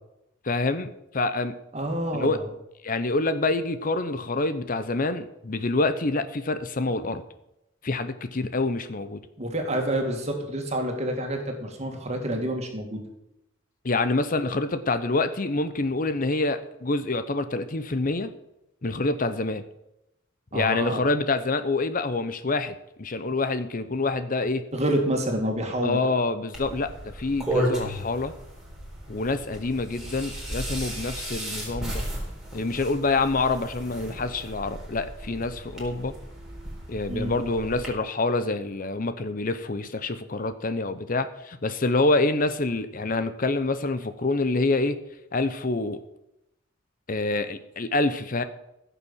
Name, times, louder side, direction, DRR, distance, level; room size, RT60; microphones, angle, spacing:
voice 1, 0.4-0.9 1.1-1.5 2.1-2.4 2.8-7.2 7.8-9.2 13.8-18.3 18.8-19.6 20.5-24.6 25.8-28.3 29.1-32.1 32.5-36.1 36.9-45.0 45.3-46.0 47.1-48.4, left 3 dB, 45° left, 11 dB, 0.8 m, -26 dB
voice 2, 1.7-2.5 9.4-13.0 20.5-21.0 24.7-26.0 37.1-37.3, right 1 dB, 35° right, 3 dB, 2.5 m, -28 dB
sound 1, 26.5-37.9, equal, 5° right, 4.1 m, -34 dB
15.5 x 7.0 x 7.3 m, 0.85 s
head